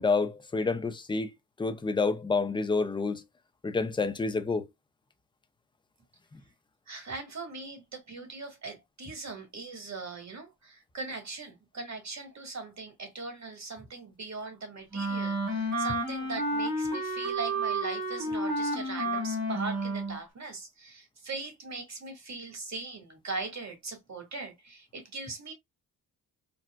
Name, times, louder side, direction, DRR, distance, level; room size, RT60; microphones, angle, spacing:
voice 1, 0.0-1.3 1.6-3.2 3.6-4.7 6.3-6.4, left 4 dB, 10° left, 0.5 m, -28 dB
voice 2, 6.9-25.5, right 3 dB, 40° right, 1.5 m, -40 dB
Wind instrument woodwind instrument, 14.9-20.2, right 1 dB, 80° right, 2.2 m, -31 dB
4.0 x 2.1 x 2.2 m
supercardioid pair, 55°, 44 cm